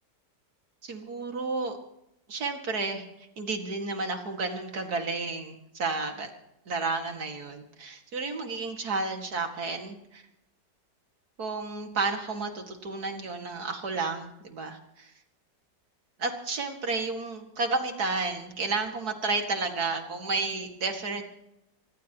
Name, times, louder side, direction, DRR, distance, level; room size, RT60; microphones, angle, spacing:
voice 1, 0.8-1.8 2.3-6.3 6.7-10.2 11.4-15.1 16.2-21.2, right 3 dB, 55° right, 4 dB, 2.6 m, -32 dB
24.0 x 20.0 x 3.0 m, 0.81 s
omnidirectional pair, 2.0 m